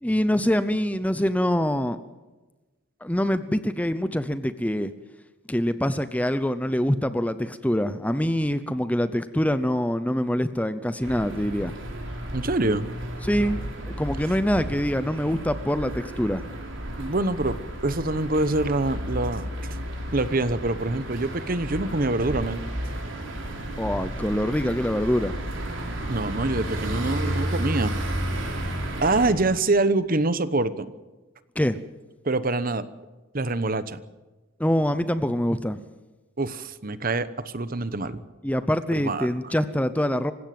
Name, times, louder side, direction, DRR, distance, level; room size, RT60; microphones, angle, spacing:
voice 1, 0.0-2.0 3.0-4.9 5.5-11.7 13.2-13.6 13.8-16.4 23.8-25.3 31.6-31.8 34.6-35.8 38.4-40.3, equal, 5° left, 12 dB, 0.6 m, -24 dB
sound 1, 11.0-29.3, right 1 dB, 60° right, 4.3 m, -32 dB
voice 2, 12.3-12.9 17.0-17.6 17.8-19.5 20.1-22.6 26.1-27.9 29.0-30.8 32.2-32.9 33.3-34.0 36.4-38.2 38.9-39.3, right 2 dB, 40° right, 14 dB, 1.0 m, -25 dB
27.0 x 16.0 x 7.7 m, 1.2 s
head